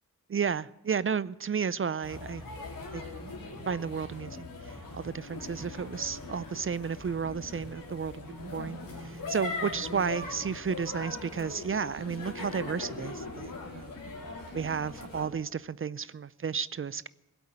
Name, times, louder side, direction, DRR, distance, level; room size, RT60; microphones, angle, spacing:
voice 1, 0.3-2.4 2.9-3.0 3.7-4.5 4.9-8.2 8.5-8.8 9.0-13.9 14.5-17.1, right 6 dB, 40° right, 0.5 m, -32 dB
sound 1, 2.0-15.3, left 3 dB, 85° left, 3.3 m, -40 dB
17.0 x 8.1 x 8.8 m
cardioid pair, 50°, 33 cm